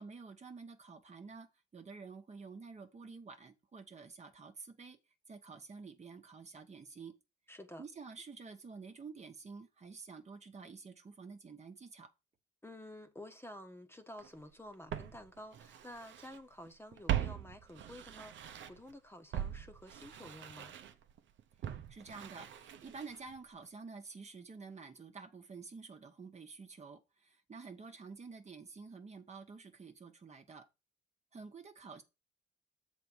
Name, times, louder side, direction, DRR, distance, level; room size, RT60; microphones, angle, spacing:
voice 1, 0.0-5.0 5.3-7.1 7.8-12.1 21.9-30.7 31.3-32.0, right 4 dB, 35° right, 1.2 m, -50 dB
voice 2, 7.5-7.8 12.6-20.8, left 1 dB, 10° left, 1.2 m, -51 dB
Walk footsteps, 14.2-14.3 14.9-16.4 16.7-18.9 19.3-23.4 23.6-23.7, right 11 dB, 70° right, 0.9 m, -41 dB
7.1 x 4.2 x 6.1 m
cardioid pair, 90°, 20 cm